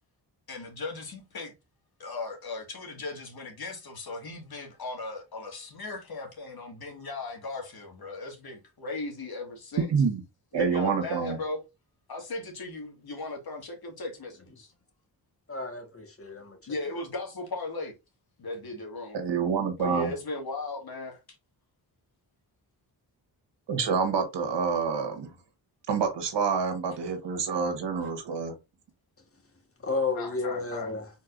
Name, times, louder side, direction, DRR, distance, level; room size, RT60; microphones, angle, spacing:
voice 1, 0.5-1.5 2.0-9.9 10.5-11.6 12.1-14.7 16.7-17.9 18.4-19.2 19.8-21.2 30.2-30.9, left 3 dB, 60° left, 2.0 m, -37 dB
voice 2, 9.9-10.2 10.5-11.4 19.1-20.1 23.7-25.3 25.9-28.5, right 5 dB, 80° right, 1.4 m, -27 dB
voice 3, 15.5-17.0 29.8-31.1, left 3 dB, 30° left, 1.6 m, -32 dB
4.4 x 4.0 x 2.6 m
cardioid pair, 60°, 42 cm